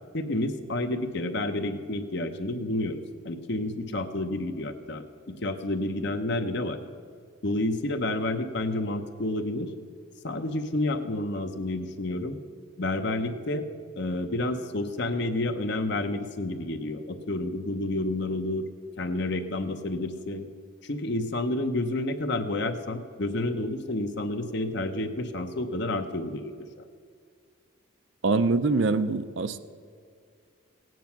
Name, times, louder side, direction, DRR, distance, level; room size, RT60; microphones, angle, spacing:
voice 1, 0.1-6.8 7.4-9.7 10.2-12.4 12.8-13.7 14.0-18.6 19.0-20.5 20.8-26.5, left 2 dB, 55° left, 7 dB, 0.9 m, -30 dB
voice 2, 28.2-29.6, right 3 dB, 60° right, 12 dB, 0.5 m, -24 dB
17.5 x 9.3 x 5.9 m, 2.2 s
head